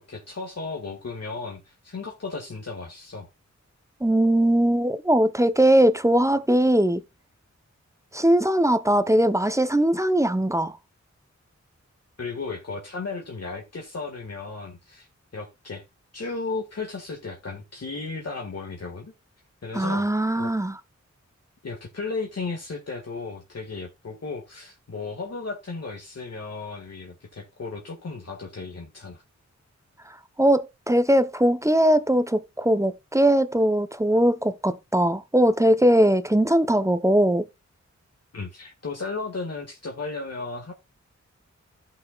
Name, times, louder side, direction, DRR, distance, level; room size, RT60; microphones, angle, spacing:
voice 1, 0.1-3.3 12.2-15.1 15.3-15.8 16.1-19.1 19.6-20.1 20.4-20.5 21.6-29.2 38.3-40.7, left 4 dB, 55° left, 1.7 m, -35 dB
voice 2, 4.0-7.0 8.1-10.8 19.7-20.8 30.4-37.4, right 1 dB, 10° right, 0.7 m, -20 dB
15.0 x 5.6 x 2.3 m
wide cardioid pair, 65°, 29 cm